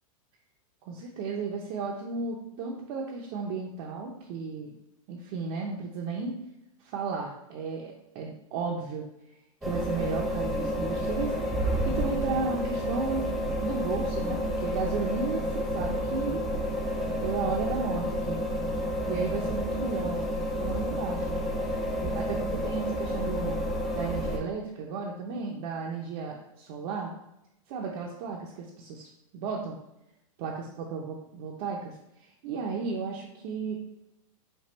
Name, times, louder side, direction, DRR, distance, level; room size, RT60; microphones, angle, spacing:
voice 1, 0.9-4.8 5.1-6.4 6.8-9.1 9.6-11.4 11.8-13.4 13.6-16.4 17.1-18.4 19.1-21.5 22.0-23.6 23.9-27.1 27.7-29.8 30.4-31.9 32.2-33.8, right 4 dB, 40° right, -1 dB, 0.6 m, -34 dB
sound 1, 9.6-24.4, equal, ahead, 0.4 m, -30 dB
5.3 x 2.3 x 4.0 m, 0.87 s
supercardioid pair, 155°, 18 cm